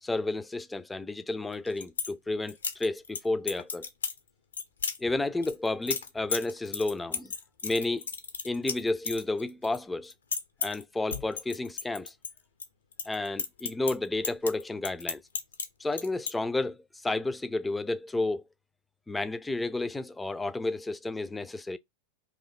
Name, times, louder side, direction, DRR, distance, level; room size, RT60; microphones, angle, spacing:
voice 1, 0.0-3.9 5.0-7.3 7.6-8.1 8.4-10.1 10.6-12.1 13.1-15.2 15.8-18.4 19.1-21.8, left 2 dB, 10° left, 0.3 m, -31 dB
sound 1, 1.5-2.1 2.5-3.2 3.5-4.2 4.5-5.0 5.4-9.8 10.0-10.8 11.1-12.7 12.9-15.7 15.9-16.3, left 5 dB, 70° left, 0.5 m, -34 dB
2.7 x 2.5 x 4.0 m
figure-of-eight pair, 90°, 0 cm